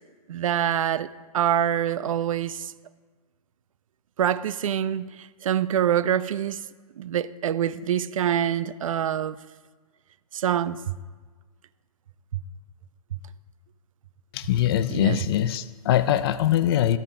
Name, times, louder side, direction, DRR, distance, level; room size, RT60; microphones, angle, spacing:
voice 1, 0.3-2.7 4.2-6.6 7.0-9.4 10.3-10.9 14.9-15.2, right 10 dB, 60° right, 0.4 m, -25 dB
voice 2, 14.3-17.0, left 11 dB, 40° left, 0.4 m, -22 dB
13.0 x 4.5 x 3.8 m
figure-of-eight pair, 125°, 19 cm